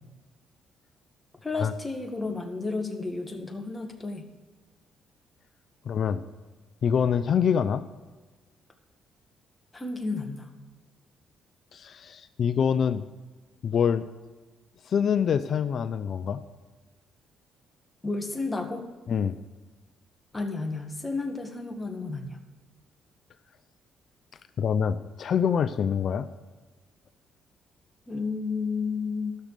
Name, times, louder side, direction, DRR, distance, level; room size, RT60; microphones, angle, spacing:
voice 1, 1.4-4.2 9.7-10.5 18.0-18.9 20.3-22.4 28.1-29.4, left 3 dB, 20° left, 4 dB, 1.7 m, -32 dB
voice 2, 5.9-6.2 6.8-7.8 11.7-13.0 13.6-14.1 14.9-16.4 19.1-19.3 24.6-26.3, left 7 dB, 60° left, 12 dB, 0.5 m, -25 dB
12.5 x 6.6 x 6.7 m, 1.3 s
supercardioid pair, 75°, 0 cm